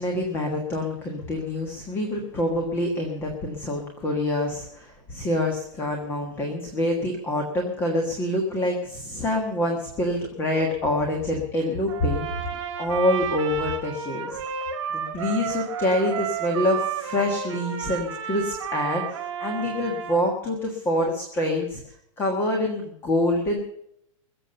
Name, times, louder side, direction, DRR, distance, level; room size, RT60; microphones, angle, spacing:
voice 1, 0.0-12.2 12.5-14.4 14.9-23.6, left 1 dB, 15° left, 2 dB, 1.5 m, -26 dB
Trumpet, 11.9-20.2, right 8 dB, 45° right, 3.9 m, -32 dB
21.0 x 7.7 x 6.7 m, 0.74 s
supercardioid pair, 175°, 18 cm